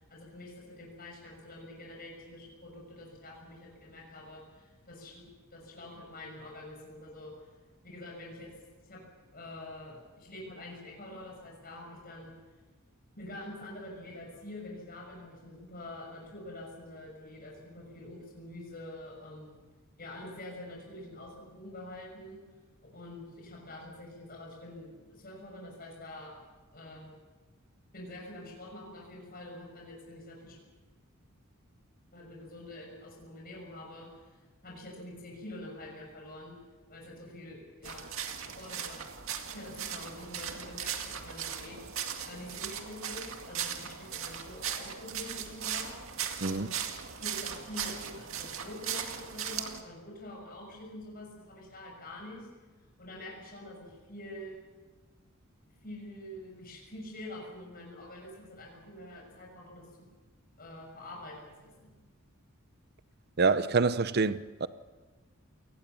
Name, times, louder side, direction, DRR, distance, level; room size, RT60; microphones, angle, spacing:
voice 1, 0.1-7.5 7.8-8.5 8.8-9.0 9.3-12.3 13.2-19.6 20.0-22.4 22.9-26.4 26.7-27.2 27.9-30.6 32.1-36.5 36.9-38.1 38.4-39.0 39.5-41.8 42.2-46.0 46.4-46.9 47.1-52.5 53.0-54.6 55.8-60.1 60.6-61.9, left 1 dB, 45° left, 6.5 m, -46 dB
sound 1, 37.8-49.8, right 8 dB, 70° right, 2.2 m, -38 dB
voice 2, 63.4-64.7, right 4 dB, 50° right, 0.7 m, -26 dB
28.5 x 19.5 x 7.0 m
head